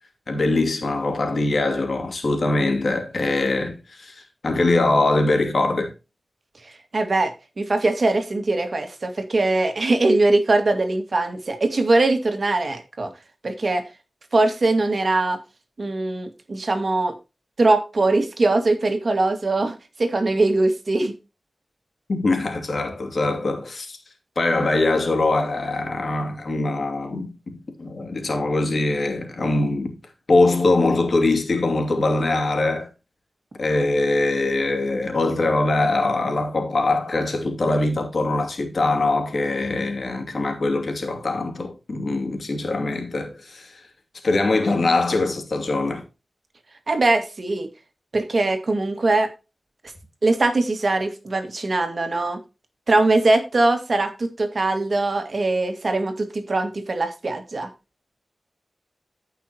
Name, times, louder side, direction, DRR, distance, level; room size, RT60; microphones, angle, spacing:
voice 1, 0.3-5.9 22.1-24.0 24.4-30.0 30.3-32.9 33.6-43.8 44.2-46.0, left 2 dB, 65° left, 2.6 m, -22 dB
voice 2, 6.9-13.1 13.4-13.8 14.3-15.4 15.8-17.1 17.6-21.1 46.9-47.7 48.1-49.3 50.2-52.4 52.9-57.7, right 2 dB, 60° right, 2.1 m, -21 dB
14.5 x 5.8 x 3.0 m
wide cardioid pair, 60°, 0 cm